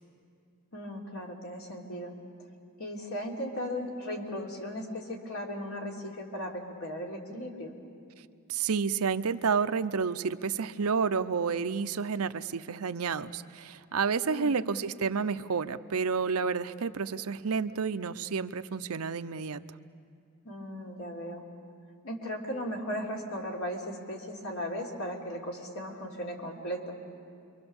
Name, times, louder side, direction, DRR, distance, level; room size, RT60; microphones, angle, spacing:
voice 1, 0.7-2.1 2.8-7.7 14.2-14.5 20.4-21.4 22.0-27.0, equal, 80° left, -1 dB, 3.4 m, -37 dB
voice 2, 8.5-19.6, right 5 dB, 85° right, 11 dB, 0.7 m, -30 dB
28.0 x 24.0 x 7.1 m, 2.4 s
head